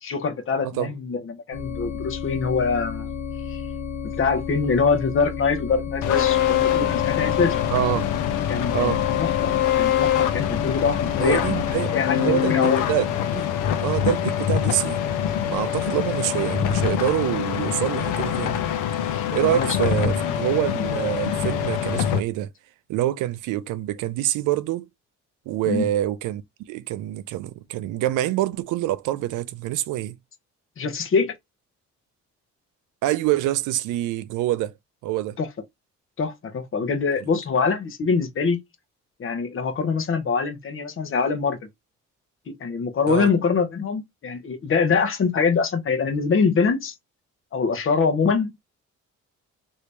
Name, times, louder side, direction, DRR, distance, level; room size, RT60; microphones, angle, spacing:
voice 1, 0.0-3.1 3.5-3.6 4.0-7.6 8.5-11.6 11.9-12.8 19.1-20.3 25.7-25.9 30.8-31.3 35.4-35.5 36.2-38.6 39.2-41.6 42.6-46.9 47.5-48.5, left 5 dB, 45° left, 0.8 m, -24 dB
sound 1, 1.5-11.7, left 6 dB, 65° left, 1.1 m, -32 dB
sound 2, 6.0-22.2, left 10 dB, 90° left, 0.7 m, -24 dB
voice 2, 7.7-8.1 8.7-9.0 11.2-12.5 12.9-13.1 13.3-13.4 13.8-15.0 15.4-18.6 19.3-22.5 22.9-24.9 25.5-26.4 26.7-30.2 33.0-34.7 35.0-35.4 43.1-43.3, right 14 dB, 90° right, 0.5 m, -26 dB
3.1 x 2.7 x 3.2 m
cardioid pair, 90°, 30 cm